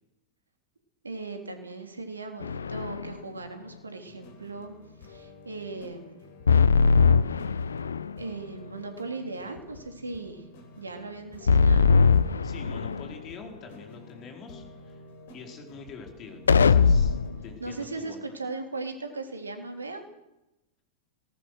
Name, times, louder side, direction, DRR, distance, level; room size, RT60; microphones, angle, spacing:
voice 1, 1.0-4.7 5.0-6.2 8.2-10.4 10.8-11.8 17.6-20.0, right 3 dB, 75° right, 5 dB, 3.3 m, -38 dB
sound 1, 2.4-3.1 6.5-8.2 11.5-13.1 16.5-17.4, left 5 dB, 70° left, 0.7 m, -21 dB
sound 2, 4.1-18.4, left 2 dB, 55° left, 4.5 m, -50 dB
voice 2, 12.4-15.0 15.3-18.2, left 5 dB, 30° left, 3 dB, 4.8 m, -45 dB
20.5 x 19.5 x 6.6 m, 0.94 s
figure-of-eight pair, 90°, 0 cm